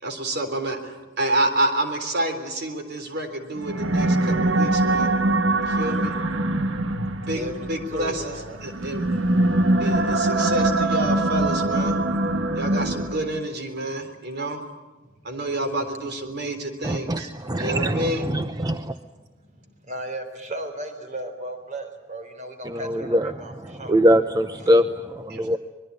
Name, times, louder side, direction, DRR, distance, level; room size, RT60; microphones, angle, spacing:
voice 1, 0.0-5.1 5.6-6.2 7.3-7.4 7.7-8.3 8.6-9.0 9.8-12.0 12.6-14.6 15.2-17.3 17.6-18.3 25.3-25.5, right 1 dB, 60° right, 7 dB, 3.6 m, -28 dB
sound 1, 3.6-13.4, right 2 dB, 75° right, 1.5 m, -23 dB
voice 2, 7.3-8.6 8.9-9.2 11.9-12.3 13.9-14.1 15.0-15.7 16.9-17.0 18.8-19.0 19.4-23.9, right 1 dB, 40° right, 7 dB, 3.8 m, -37 dB
voice 3, 16.8-18.9 22.6-25.6, equal, 20° right, 9 dB, 0.8 m, -23 dB
25.0 x 22.0 x 9.6 m, 1.1 s
head